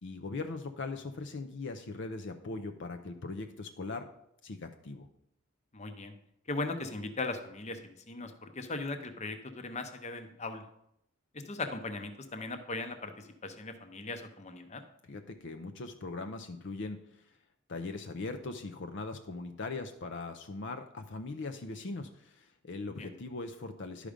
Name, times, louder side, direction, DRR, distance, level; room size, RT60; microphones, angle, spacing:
voice 1, 0.0-4.1 4.4-5.1 15.1-17.2 17.7-24.1, left 3 dB, 60° left, 7 dB, 0.6 m, -40 dB
voice 2, 5.7-6.1 6.5-10.7 11.5-14.8 23.0-23.1, left 3 dB, 35° left, 8 dB, 0.8 m, -38 dB
11.5 x 5.0 x 5.1 m, 0.77 s
head